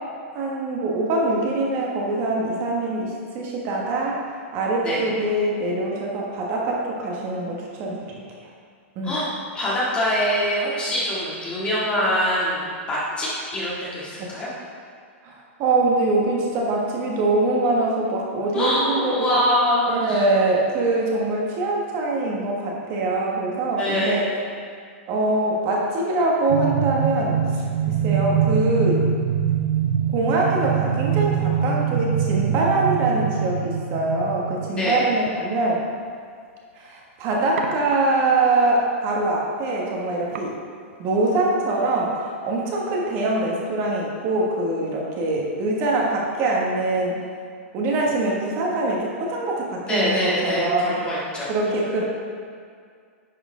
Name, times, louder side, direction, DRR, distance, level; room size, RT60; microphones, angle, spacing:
voice 1, 0.3-4.2 4.5-8.2 9.0-9.1 14.2-14.3 15.2-19.4 19.9-24.2 25.1-29.0 30.1-35.8 36.8-40.5 41.0-42.1 42.4-47.2 47.7-51.0 51.5-52.0, right 2 dB, 35° right, -2 dB, 1.3 m, -23 dB
voice 2, 9.5-14.5 18.5-20.3 23.8-24.3 34.8-35.0 49.8-51.8, equal, 15° left, -7 dB, 1.8 m, -24 dB
sound 1, 26.5-34.7, right 7 dB, 60° right, 0.4 m, -23 dB
sound 2, 33.9-41.6, right 4 dB, 75° right, 0.8 m, -41 dB
10.5 x 4.6 x 3.8 m, 2.1 s
hypercardioid pair, 155°, 7 cm